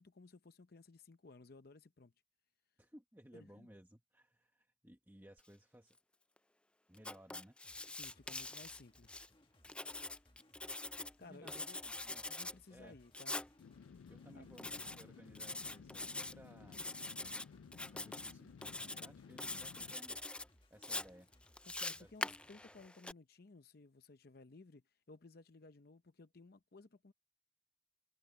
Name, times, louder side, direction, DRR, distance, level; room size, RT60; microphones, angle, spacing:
voice 1, 0.0-2.1 3.3-3.7 7.9-9.2 11.0-11.8 12.3-13.4 14.3-14.6 21.6-27.1, left 3 dB, 50° left, 0.7 m, -58 dB
voice 2, 2.8-6.0 6.9-7.6 11.2-12.3 12.7-13.0 14.1-16.8 17.9-20.2 20.7-21.3 22.0-22.4, equal, 10° right, 1.2 m, -60 dB
Writing, 7.0-9.3 9.6-11.1 11.5-12.5 13.1-13.5 14.6-15.0 15.3-16.3 16.7-17.4 17.7-18.3 18.6-19.1 19.4-20.4 20.8-23.1, left 2 dB, 5° left, 0.4 m, -44 dB
sound 1, 7.6-22.9, left 1 dB, 25° left, 1.8 m, -68 dB
sound 2, 13.6-20.0, left 6 dB, 85° left, 0.4 m, -56 dB
head